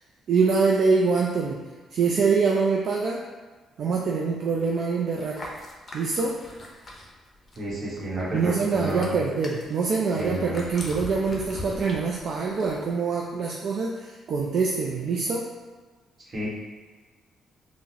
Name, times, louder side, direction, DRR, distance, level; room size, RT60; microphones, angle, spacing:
voice 1, 0.3-1.6 1.9-3.2 3.8-5.4 5.9-6.4 8.3-15.4, right 4 dB, 65° right, -2 dB, 0.3 m, -24 dB
sound 1, 5.2-7.7 8.0-12.9, left 1 dB, 35° left, 0.6 m, -41 dB
voice 2, 7.6-9.2 10.2-10.7 16.3-16.5, right 1 dB, 40° right, -6 dB, 1.1 m, -31 dB
3.8 x 2.0 x 2.7 m, 1.4 s
cardioid pair, 90°, 0 cm